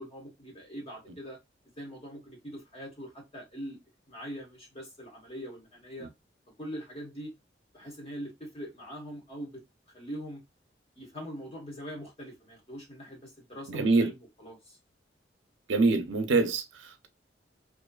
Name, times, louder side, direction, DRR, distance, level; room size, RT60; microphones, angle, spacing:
voice 1, 0.0-1.4 1.8-3.8 4.1-6.1 6.6-7.3 7.7-9.5 9.9-10.4 10.9-14.8, equal, 35° left, 1.1 m, -42 dB
voice 2, 13.7-14.1 15.7-17.1, right 3 dB, 80° right, 0.5 m, -25 dB
2.5 x 2.2 x 2.2 m
head